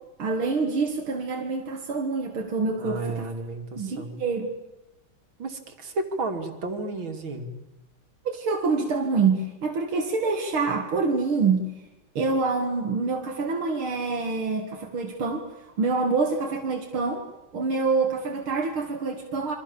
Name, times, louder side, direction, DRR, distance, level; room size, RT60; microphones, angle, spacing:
voice 1, 0.2-3.3 3.8-4.5 8.2-11.7 12.1-17.2 17.5-19.6, right 4 dB, 90° right, 2 dB, 3.0 m, -26 dB
voice 2, 2.8-4.2 5.4-7.5, right 2 dB, 70° right, 6 dB, 3.6 m, -32 dB
29.0 x 24.5 x 7.2 m, 0.97 s
omnidirectional pair, 2.2 m